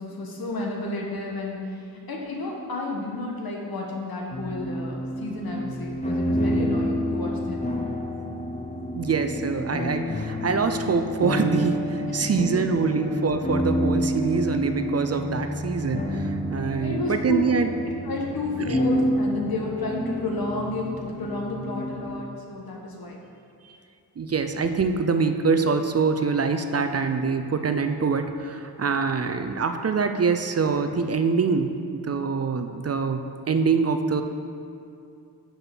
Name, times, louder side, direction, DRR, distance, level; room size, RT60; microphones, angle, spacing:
voice 1, 0.0-1.8 2.1-7.6 12.0-13.1 16.8-17.5 18.0-23.2, left 2 dB, 70° left, -1 dB, 1.3 m, -31 dB
sound 1, 4.3-22.2, equal, 20° left, 0.7 m, -29 dB
voice 2, 8.9-17.7 18.6-18.8 24.2-31.7 32.0-34.2, right 5 dB, 40° right, 7 dB, 0.5 m, -24 dB
5.6 x 5.6 x 5.9 m, 2.5 s
cardioid pair, 70°, 38 cm